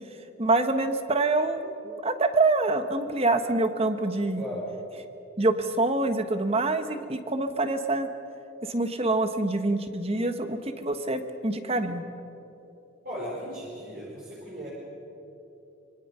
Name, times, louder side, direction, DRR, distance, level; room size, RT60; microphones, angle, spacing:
voice 1, 0.4-4.4 5.4-8.1 8.6-12.0, right 2 dB, 30° right, 8 dB, 1.3 m, -26 dB
voice 2, 13.0-14.7, equal, 50° right, -6 dB, 5.3 m, -37 dB
25.5 x 24.0 x 5.6 m, 2.9 s
head